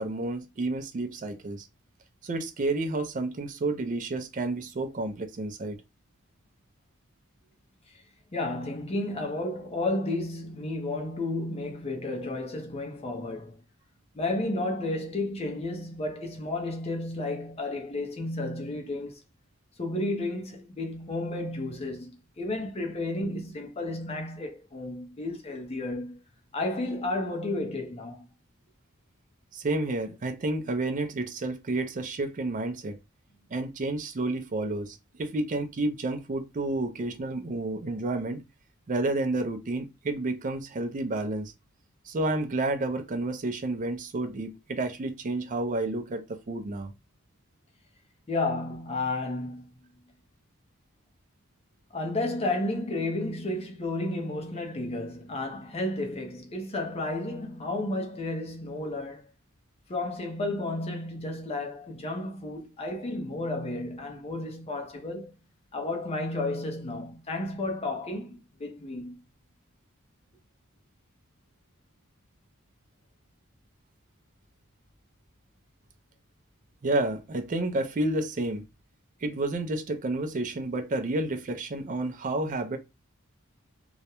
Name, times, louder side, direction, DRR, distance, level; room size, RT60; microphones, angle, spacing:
voice 1, 0.0-1.7 2.2-5.8 29.5-33.0 33.5-38.4 38.9-41.5 42.1-46.9 76.8-78.6 79.2-82.8, right 2 dB, 40° right, 0.4 m, -30 dB
voice 2, 8.3-13.6 14.1-19.2 19.8-26.2 26.5-28.3 48.3-49.7 51.9-59.3 59.9-65.3 65.7-69.2, left 2 dB, 30° left, 0.5 m, -32 dB
2.3 x 2.1 x 2.9 m
head